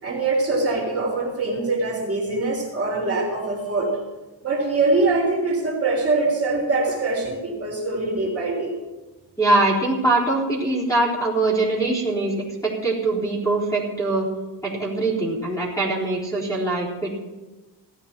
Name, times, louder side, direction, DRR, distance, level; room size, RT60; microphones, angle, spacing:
voice 1, 0.0-3.9 4.4-8.8, right 3 dB, 35° right, -2 dB, 3.3 m, -23 dB
voice 2, 9.4-12.4 12.6-14.3 14.6-17.1, right 2 dB, 10° left, -5 dB, 4.0 m, -22 dB
16.5 x 13.0 x 4.5 m, 1.2 s
wide cardioid pair, 165°, 42 cm